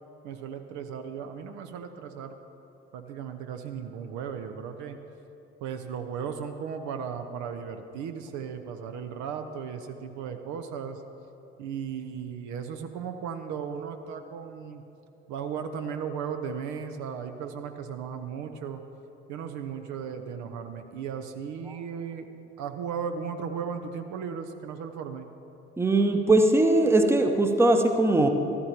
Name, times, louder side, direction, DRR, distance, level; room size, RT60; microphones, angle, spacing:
voice 1, 0.2-2.4 2.9-5.0 5.6-11.0 11.6-14.8 15.3-18.8 19.3-22.3 22.6-25.3, right 7 dB, 55° right, 7 dB, 0.8 m, -36 dB
voice 2, 25.8-28.3, right 2 dB, 5° right, 5 dB, 0.9 m, -20 dB
14.0 x 12.5 x 2.9 m, 2.7 s
figure-of-eight pair, 50°, 34 cm